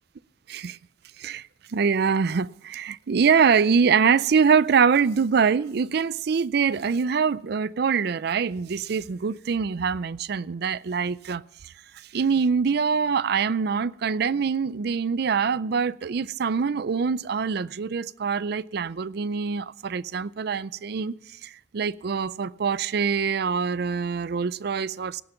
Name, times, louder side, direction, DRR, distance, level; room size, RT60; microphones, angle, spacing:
voice 1, 1.2-11.7 12.1-25.2, right 6 dB, 65° right, 0.4 m, -24 dB
17.5 x 8.8 x 5.7 m
head